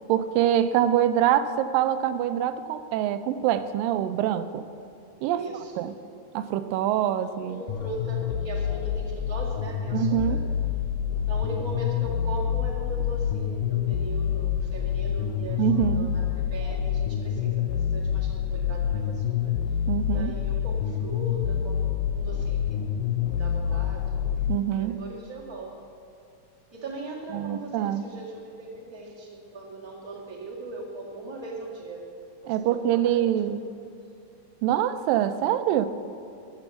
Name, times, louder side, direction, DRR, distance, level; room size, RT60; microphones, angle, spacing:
voice 1, 0.1-4.6 5.2-5.5 5.8-5.9 6.3-7.6 9.9-10.4 15.6-16.1 19.9-20.3 24.5-25.0 27.3-28.0 32.5-33.6 34.6-35.9, right 11 dB, 85° right, 12 dB, 2.3 m, -25 dB
voice 2, 5.3-5.9 7.4-10.4 11.2-19.6 20.0-22.8 23.3-24.2 24.7-25.9 26.7-32.0 32.4-33.2, right 2 dB, 20° right, -3 dB, 0.7 m, -39 dB
sound 1, 7.7-24.6, left 9 dB, 80° left, 1.8 m, -27 dB
14.0 x 7.2 x 7.0 m, 2.6 s
omnidirectional pair, 3.9 m